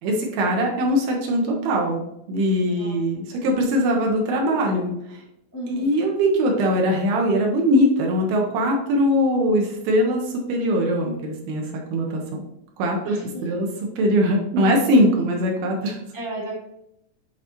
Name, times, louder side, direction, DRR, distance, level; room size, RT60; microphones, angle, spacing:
voice 1, 0.0-2.0 2.3-5.2 5.7-12.4 12.8-13.7 14.0-16.0, equal, 75° right, 0 dB, 2.6 m, -21 dB
voice 2, 5.5-6.0 13.0-13.4 14.9-15.0 16.1-16.5, right 1 dB, 10° left, -5 dB, 0.9 m, -34 dB
10.5 x 4.0 x 3.0 m, 0.82 s
omnidirectional pair, 4.8 m